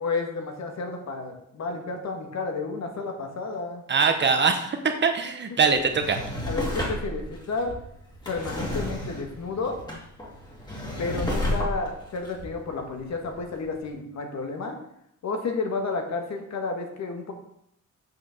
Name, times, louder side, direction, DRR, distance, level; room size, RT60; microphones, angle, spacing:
voice 1, 0.0-3.8 5.5-5.6 6.4-7.7 8.3-9.8 11.0-14.8 15.2-17.3, left 3 dB, 60° left, 4 dB, 1.7 m, -31 dB
voice 2, 3.9-6.2, right 5 dB, 35° right, 6 dB, 1.0 m, -22 dB
Drawer open or close, 5.7-13.4 13.8-13.9, left 1 dB, 15° left, 2.1 m, -32 dB
7.6 x 5.9 x 6.5 m, 0.73 s
wide cardioid pair, 165°, 30 cm